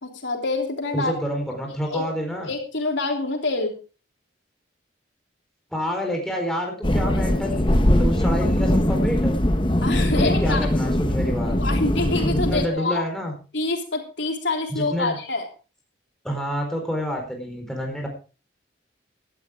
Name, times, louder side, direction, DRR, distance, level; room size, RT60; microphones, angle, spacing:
voice 1, 0.0-1.3 1.9-2.0 2.5-3.7 9.8-10.7 11.6-13.0 13.5-15.5, left 3 dB, 75° left, 3 dB, 3.3 m, -26 dB
voice 2, 0.9-2.5 5.7-9.3 10.2-11.6 12.2-13.3 14.7-15.2 16.2-18.1, equal, 5° left, 1 dB, 4.3 m, -28 dB
sound 1, 6.8-12.7, left 1 dB, 25° left, 1.0 m, -21 dB
17.0 x 12.5 x 3.7 m, 0.34 s
head